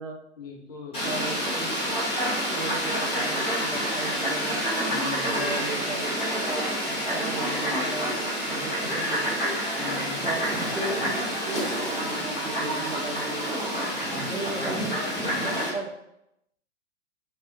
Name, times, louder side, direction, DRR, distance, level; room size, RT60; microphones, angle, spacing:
voice 1, 0.4-1.0 4.9-5.6 8.5-9.4 9.8-10.3 14.0-15.7, left 4 dB, 50° left, -1 dB, 0.7 m, -40 dB
Fowl, 0.9-15.7, equal, 15° left, 1.2 m, -28 dB
voice 2, 1.0-1.8 2.5-4.7 5.3-9.4 10.2-13.7 14.3-15.9, right 2 dB, 90° right, 3 dB, 0.5 m, -36 dB
2.8 x 2.2 x 2.3 m, 0.83 s
figure-of-eight pair, 115°, 37 cm